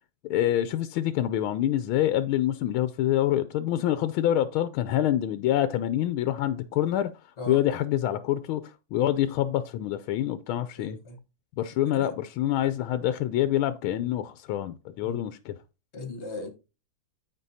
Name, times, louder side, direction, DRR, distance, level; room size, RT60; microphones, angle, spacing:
voice 1, 0.2-11.0 11.6-15.5, left 12 dB, 80° left, 1.4 m, -26 dB
voice 2, 10.8-11.2 11.8-12.1 15.0-15.2 15.9-16.5, left 2 dB, 35° left, 1.4 m, -38 dB
14.0 x 4.8 x 2.7 m
omnidirectional pair, 2.3 m